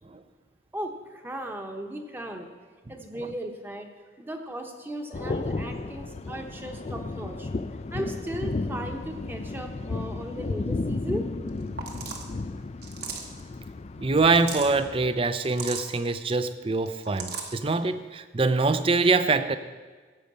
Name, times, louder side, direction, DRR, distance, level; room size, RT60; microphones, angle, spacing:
voice 1, 0.7-2.5 2.9-3.9 4.2-7.5 7.9-11.3, right 1 dB, 10° right, 3 dB, 1.0 m, -36 dB
sound 1, 5.1-15.1, left 3 dB, 35° left, 0.4 m, -33 dB
sound 2, 11.5-11.6 11.8-12.3 12.8-13.4 14.2-14.7 15.4-15.9 16.9-17.5, right 5 dB, 55° right, 1.5 m, -36 dB
voice 2, 14.0-19.6, right 3 dB, 30° right, 12 dB, 0.5 m, -24 dB
15.0 x 5.2 x 8.5 m, 1.4 s
head